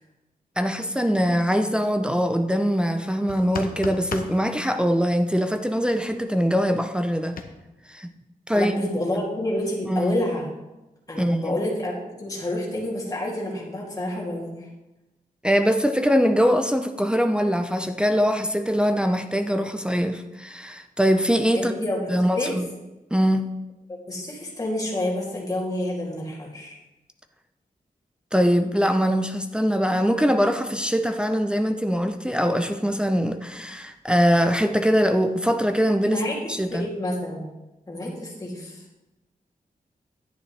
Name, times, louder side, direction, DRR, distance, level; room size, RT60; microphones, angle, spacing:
voice 1, 0.6-7.4 7.9-8.1 8.5-8.9 9.8-10.1 11.2-11.6 15.4-21.7 22.1-22.6 23.1-23.5 28.3-36.2 36.5-36.9, equal, 5° right, 0.5 m, -22 dB
sound 1, 3.3-4.4 7.4-7.5, left 5 dB, 75° left, 0.9 m, -33 dB
voice 2, 8.5-10.5 11.1-14.7 21.5-22.5 23.9-26.8 36.0-37.5 37.9-38.8, left 1 dB, 25° left, 2.6 m, -29 dB
10.5 x 9.4 x 3.3 m
wide cardioid pair, 135°, 15 cm